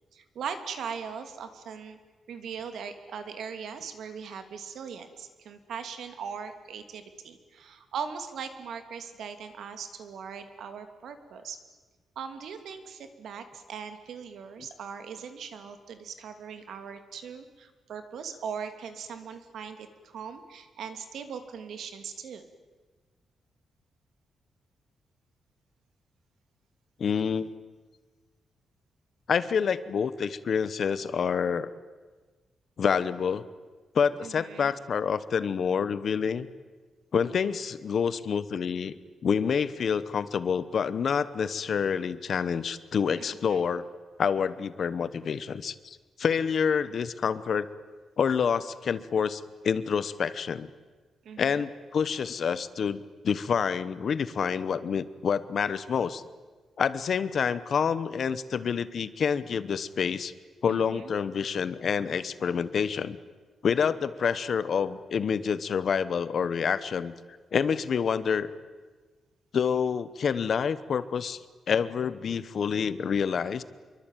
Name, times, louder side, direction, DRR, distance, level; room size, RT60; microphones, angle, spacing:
voice 1, 0.1-2.0 2.3-11.6 12.2-22.4 34.2-34.8 43.5-43.6 51.2-51.7 60.7-61.1, right 6 dB, 70° right, 8 dB, 2.8 m, -40 dB
voice 2, 27.0-27.5 29.3-31.7 32.8-33.4 33.9-36.5 37.1-38.9 39.2-43.8 44.2-47.7 48.2-50.7 51.4-56.2 56.8-60.3 60.6-63.2 63.6-67.1 67.5-68.5 69.5-71.4 71.7-73.6, left 6 dB, 45° left, 15 dB, 1.1 m, -27 dB
26.5 x 23.5 x 9.2 m, 1.4 s
wide cardioid pair, 170°, 0 cm